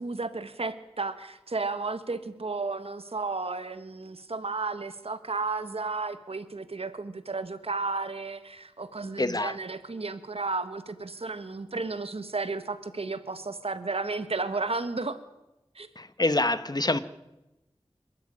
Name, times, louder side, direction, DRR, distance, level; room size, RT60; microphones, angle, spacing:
voice 1, 0.0-15.2 15.7-15.9, right 3 dB, 80° right, 11 dB, 1.5 m, -33 dB
voice 2, 9.2-9.5 16.0-17.0, left 2 dB, 40° left, 13 dB, 1.4 m, -26 dB
27.0 x 13.5 x 10.0 m, 0.98 s
wide cardioid pair, 55°, 10 cm